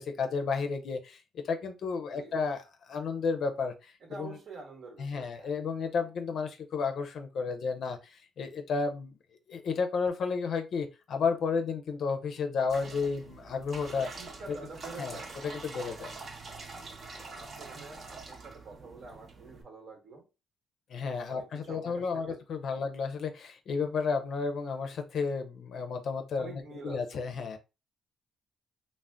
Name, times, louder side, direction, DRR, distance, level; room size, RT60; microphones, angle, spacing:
voice 1, 0.0-4.4 5.0-9.1 9.5-14.1 14.5-14.6 15.0-15.2 15.4-16.1 20.9-27.6, left 5 dB, 65° left, 0.4 m, -32 dB
voice 2, 4.0-5.6 14.1-15.3 17.3-20.3 21.3-22.4 22.7-22.8 26.4-27.2, right 3 dB, 65° right, 1.1 m, -47 dB
sound 1, 12.7-19.6, right 3 dB, 45° right, 0.7 m, -45 dB
2.4 x 2.0 x 3.4 m
cardioid pair, 90°, 0 cm